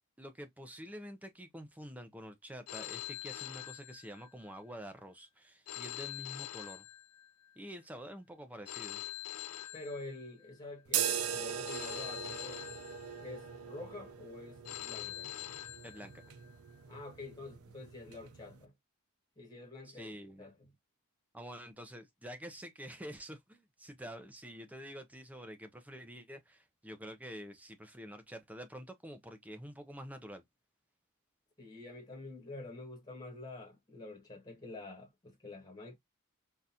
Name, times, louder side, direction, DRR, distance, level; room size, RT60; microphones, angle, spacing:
voice 1, 0.2-6.9 7.6-9.0 15.8-16.2 19.8-20.5 21.3-30.4, equal, 5° right, 0.6 m, -48 dB
Telephone, 2.7-4.5 5.7-7.5 8.7-10.5 11.7-13.5 14.7-16.5, left 15 dB, 80° left, 0.4 m, -44 dB
voice 2, 9.7-12.6 13.2-15.3 16.9-18.7 19.4-20.7 31.6-36.0, left 2 dB, 20° left, 1.3 m, -47 dB
sound 1, 10.9-18.6, right 8 dB, 80° right, 0.6 m, -40 dB
3.8 x 2.5 x 2.7 m
head